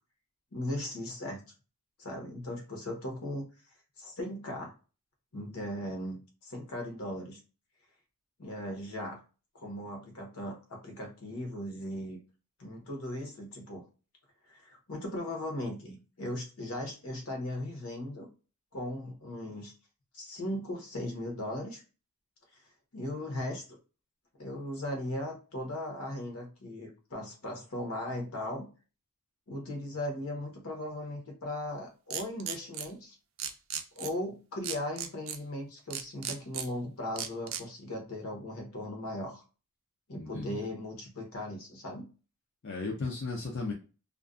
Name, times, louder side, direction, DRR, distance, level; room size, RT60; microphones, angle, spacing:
voice 1, 0.5-1.4 2.0-3.5 4.0-4.7 5.3-7.4 8.4-9.2 9.5-12.2 12.6-13.8 14.5-18.3 18.7-19.7 20.1-21.8 22.9-23.8 24.4-28.7 29.5-33.2 33.9-39.4 40.1-42.1, left 1 dB, 75° left, 2 dB, 0.9 m, -38 dB
sound 1, 32.1-32.9 33.4-34.1 34.6-35.4 35.9-36.7 37.2-37.6, right 9 dB, 60° right, 0.3 m, -35 dB
voice 2, 40.1-40.7 42.6-43.7, left 3 dB, 50° left, 0 dB, 0.4 m, -35 dB
2.4 x 2.2 x 2.4 m, 0.34 s
head